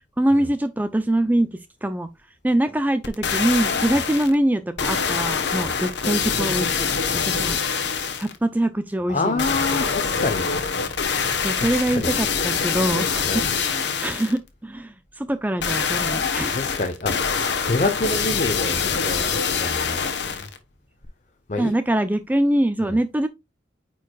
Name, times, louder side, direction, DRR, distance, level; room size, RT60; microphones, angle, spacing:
voice 1, 0.0-2.1 2.4-6.9 7.2-7.6 8.2-9.4 9.7-9.9 11.4-16.6 21.6-23.3, right 1 dB, 10° right, 0.3 m, -24 dB
sound 1, 3.0-4.3 4.8-8.4 9.4-14.4 15.6-20.6 21.0-21.1, left 6 dB, 65° left, 1.0 m, -24 dB
voice 2, 9.1-10.5 11.6-12.1 13.2-13.4 16.5-20.5 21.5-21.7 22.8-23.0, left 2 dB, 40° left, 0.8 m, -27 dB
8.9 x 4.7 x 2.3 m
head